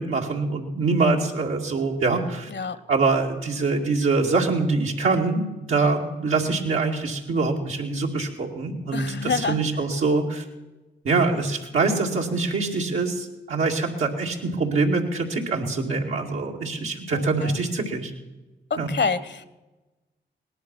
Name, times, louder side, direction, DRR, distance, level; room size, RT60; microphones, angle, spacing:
voice 1, 0.0-2.5 2.9-10.4 11.0-18.1 18.8-18.9, right 3 dB, 85° right, -1 dB, 2.2 m, -24 dB
voice 2, 8.9-9.6 17.1-17.6 18.7-19.5, left 4 dB, 60° left, 14 dB, 1.0 m, -27 dB
18.5 x 11.5 x 6.1 m, 1.1 s
cardioid pair, 45°, 20 cm